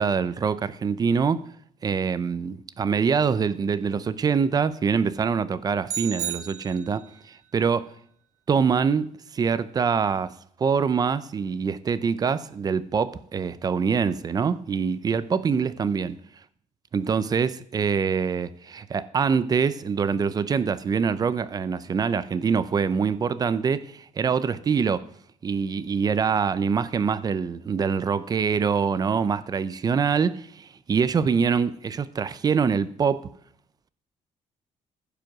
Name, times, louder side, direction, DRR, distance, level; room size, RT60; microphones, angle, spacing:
voice 1, 0.0-1.4 1.8-7.9 8.5-9.1 9.3-10.3 10.6-16.2 16.9-25.1 25.4-33.3, right 6 dB, 30° right, 0.6 m, -24 dB
sound 1, 5.8-7.2, right 10 dB, 65° right, 1.1 m, -33 dB
15.0 x 5.0 x 6.1 m
cardioid pair, 155°, 13 cm